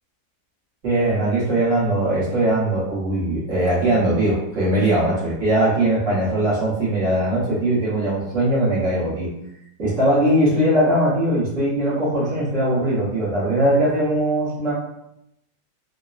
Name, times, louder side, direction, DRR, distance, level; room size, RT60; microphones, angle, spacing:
voice 1, 0.8-9.3 9.8-14.7, right 1 dB, 45° right, -8 dB, 1.1 m, -20 dB
3.9 x 2.2 x 2.4 m, 0.81 s
omnidirectional pair, 2.4 m